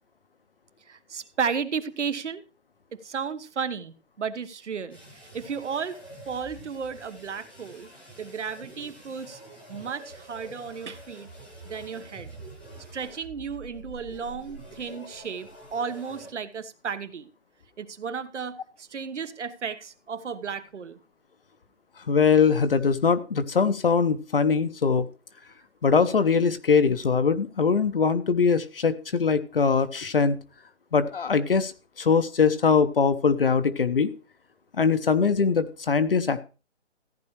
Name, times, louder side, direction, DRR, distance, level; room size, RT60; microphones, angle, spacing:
voice 1, 0.9-2.4 2.9-5.0 5.3-6.0 6.3-7.9 8.2-9.4 9.7-11.3 11.6-12.5 12.9-17.3 17.8-21.0, right 6 dB, 85° right, 1.2 m, -33 dB
sound 1, 4.9-16.3, right 1 dB, 10° left, 0.9 m, -46 dB
voice 2, 22.1-25.1 25.8-30.4 30.9-31.7 32.0-34.1 34.8-36.4, left 5 dB, 55° left, 0.8 m, -22 dB
14.5 x 9.7 x 3.1 m
hypercardioid pair, 180°, 34 cm